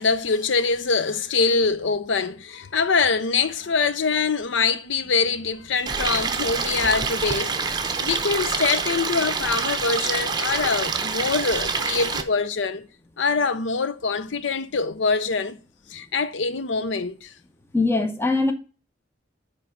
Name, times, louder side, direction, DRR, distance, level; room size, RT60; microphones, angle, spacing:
voice 1, 0.0-7.6 8.0-12.9 13.2-15.6 15.9-17.3, left 4 dB, 85° left, 0.6 m, -24 dB
Stream, 5.9-12.2, right 5 dB, 25° right, 0.7 m, -26 dB
voice 2, 17.7-18.5, left 3 dB, 15° left, 0.7 m, -21 dB
8.9 x 3.3 x 5.1 m
head